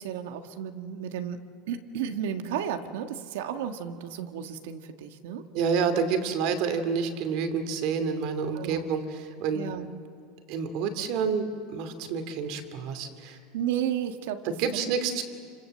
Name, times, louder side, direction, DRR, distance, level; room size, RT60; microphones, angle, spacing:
voice 1, 0.0-5.4 8.5-8.9 9.5-9.9 13.5-14.5, right 9 dB, 70° right, 7 dB, 1.6 m, -33 dB
voice 2, 5.5-9.6 10.5-11.4 11.7-13.4 14.6-15.2, right 6 dB, 45° right, 8 dB, 2.5 m, -28 dB
29.5 x 26.0 x 7.7 m, 2.4 s
supercardioid pair, 180°, 0 cm